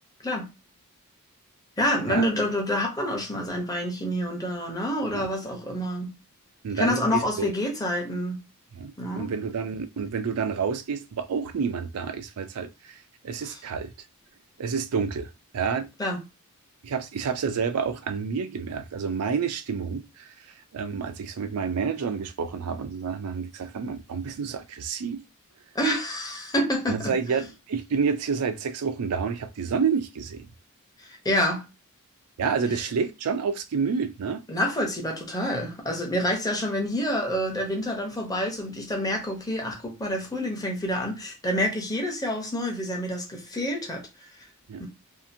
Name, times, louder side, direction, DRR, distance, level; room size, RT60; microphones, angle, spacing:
voice 1, 1.8-6.1 6.7-8.4 9.0-9.3 13.4-13.6 16.0-16.2 25.7-27.1 31.0-31.6 34.5-44.1 44.8-44.9, equal, 15° left, 0.7 m, -27 dB
voice 2, 6.6-7.5 8.7-13.9 14.6-15.9 16.8-20.3 20.7-25.2 26.9-30.5 32.4-34.4 44.7-44.8, right 5 dB, 85° right, 0.4 m, -29 dB
2.7 x 2.5 x 2.6 m
head